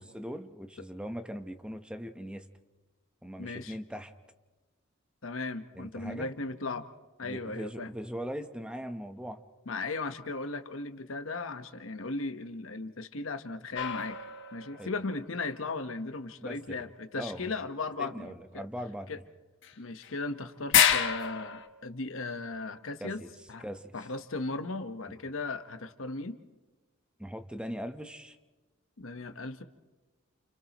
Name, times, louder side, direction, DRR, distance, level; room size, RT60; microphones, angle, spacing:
voice 1, 0.0-2.5 3.2-4.1 5.8-6.3 7.2-9.4 14.8-14.9 16.4-16.6 17.2-17.5 18.0-19.2 23.0-23.3 23.6-23.9 27.2-28.4, equal, 5° right, 7 dB, 1.0 m, -40 dB
voice 2, 3.4-3.8 5.2-6.9 7.2-7.9 9.7-14.2 14.5-18.6 19.1-19.2 19.8-23.2 23.5-23.7 23.9-26.4 29.0-29.6, left 3 dB, 85° left, 9 dB, 1.1 m, -37 dB
sound 1, 13.7-15.0 19.6-19.7 20.0-20.1 20.7-21.7, left 8 dB, 65° left, 1.3 m, -27 dB
29.5 x 29.0 x 3.0 m, 1.2 s
head